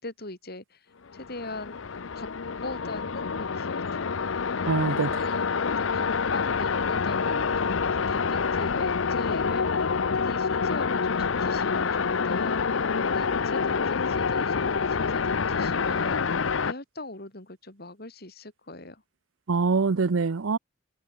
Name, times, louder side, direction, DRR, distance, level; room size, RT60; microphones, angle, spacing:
voice 1, 0.0-0.9 1.1-1.8 2.1-2.3 2.6-4.2 5.1-19.0, left 2 dB, 50° left, 4.5 m, -41 dB
sound 1, 1.1-16.7, left 5 dB, 80° left, 0.7 m, -27 dB
voice 2, 4.7-5.2 19.5-20.6, right 4 dB, 85° right, 0.6 m, -24 dB
head